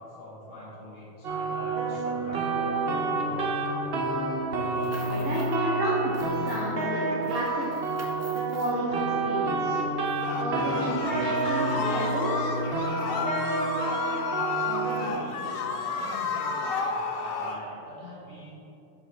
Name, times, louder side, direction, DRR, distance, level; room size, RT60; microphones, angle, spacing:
voice 1, 0.0-3.5 14.5-18.5, left 1 dB, 85° left, -7 dB, 2.2 m, -43 dB
sound 1, 1.2-15.1, right 3 dB, 55° right, 0.9 m, -29 dB
sound 2, 4.6-5.6 5.9-6.9 7.2-8.8, right 2 dB, 20° right, 0.4 m, -46 dB
voice 2, 5.0-7.6 8.5-8.9 9.2-9.8 10.3-12.5, right 1 dB, 80° right, -6 dB, 1.2 m, -31 dB
sound 3, 10.2-17.6, left 5 dB, 60° left, 0.7 m, -32 dB
8.3 x 5.1 x 3.3 m, 2.8 s
omnidirectional pair, 1.3 m